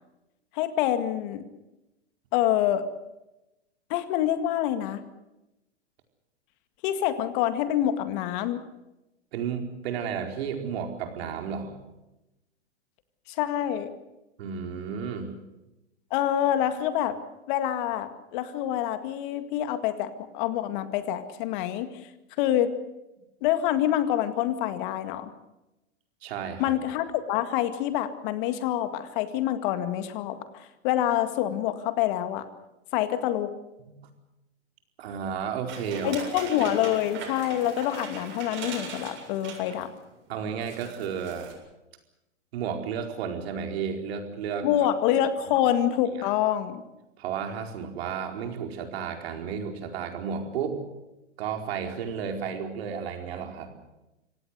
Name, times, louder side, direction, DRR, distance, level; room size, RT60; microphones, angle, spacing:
voice 1, 0.5-1.4 2.3-2.9 3.9-5.0 6.8-8.6 13.3-13.9 16.1-17.2 17.5-21.9 22.4-22.8 23.4-25.3 26.6-32.5 32.9-33.5 36.0-39.9 44.6-46.8, left 11 dB, 45° left, 10 dB, 2.0 m, -26 dB
voice 2, 9.3-11.7 14.4-15.3 26.2-26.7 33.8-34.0 35.0-36.5 40.3-41.5 42.5-44.7 46.2-46.3 47.2-50.8 51.4-53.7, right 7 dB, 60° right, 4 dB, 4.7 m, -32 dB
sound 1, 35.7-39.9 40.3-40.4 40.6-41.5, right 5 dB, 35° right, 7.6 m, -40 dB
25.5 x 17.5 x 8.1 m, 0.98 s
hypercardioid pair, 120°, 35 cm